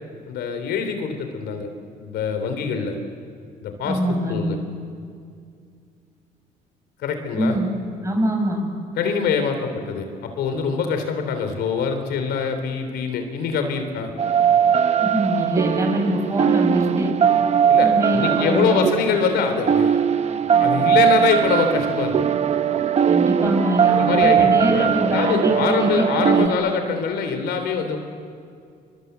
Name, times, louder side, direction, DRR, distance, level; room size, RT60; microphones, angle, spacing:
voice 1, 0.3-1.7 2.0-2.9 3.6-4.6 7.0-7.6 9.0-14.1 17.7-20.0 20.5-22.3 23.9-28.0, left 6 dB, 75° left, 7 dB, 3.5 m, -24 dB
voice 2, 3.8-4.4 7.3-7.7 8.0-8.6 15.0-17.1 17.8-18.8 23.1-26.6, right 1 dB, 20° right, 1 dB, 7.9 m, -23 dB
sound 1, 14.2-26.5, right 8 dB, 40° right, 1.1 m, -20 dB
28.0 x 24.0 x 8.1 m, 2.3 s
cardioid pair, 110°, 17 cm